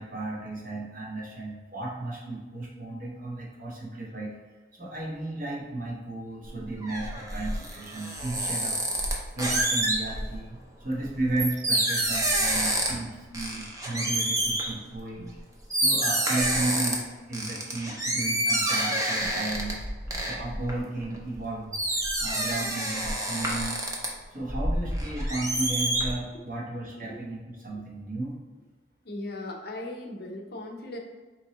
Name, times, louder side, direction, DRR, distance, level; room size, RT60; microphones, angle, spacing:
voice 1, 0.0-4.4 4.7-8.8 9.3-15.3 15.8-19.7 20.2-23.8 24.3-28.4, right 2 dB, 50° right, -4 dB, 1.0 m, -34 dB
sound 1, 6.5-10.4 10.9-13.1 13.3-14.7 15.4-15.5 15.7-17.0 17.3-21.4 21.7-24.1 24.5-26.1, right 1 dB, 20° right, 0.5 m, -28 dB
voice 2, 29.0-31.0, left 1 dB, 60° left, 1 dB, 0.6 m, -38 dB
4.4 x 3.0 x 2.9 m, 1.3 s
head